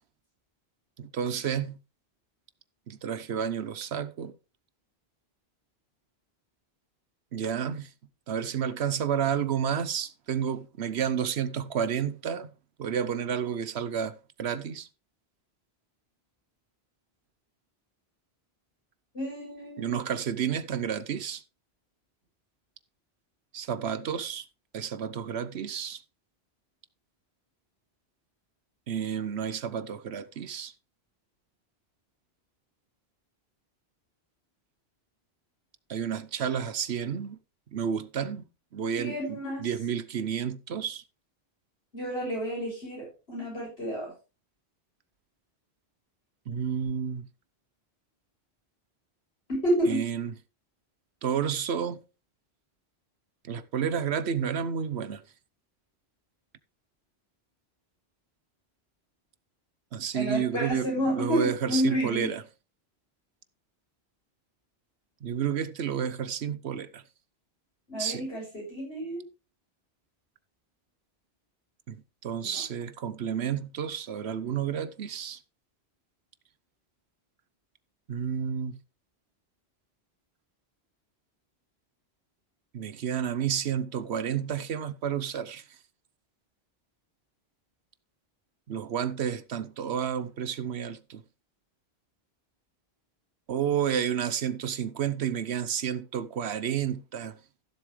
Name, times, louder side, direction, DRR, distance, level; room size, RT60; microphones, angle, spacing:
voice 1, 1.0-1.8 2.9-4.3 7.3-7.9 8.3-12.5 12.8-14.9 19.8-21.4 23.5-24.4 24.7-26.0 28.9-30.7 35.9-37.4 37.7-38.4 38.7-41.0 46.5-47.2 49.9-50.3 51.2-52.0 53.4-55.2 59.9-60.9 61.1-62.4 65.2-67.0 68.0-68.2 71.9-72.0 72.2-75.4 78.1-78.8 82.7-85.6 88.7-91.2 93.5-97.4, right 8 dB, 85° right, 1.1 m, -30 dB
voice 2, 19.1-20.0 39.0-39.7 41.9-44.1 49.5-50.0 60.1-62.3 67.9-69.2 72.4-72.6, equal, 75° left, 7.0 m, -30 dB
15.5 x 7.3 x 3.3 m
omnidirectional pair, 1.1 m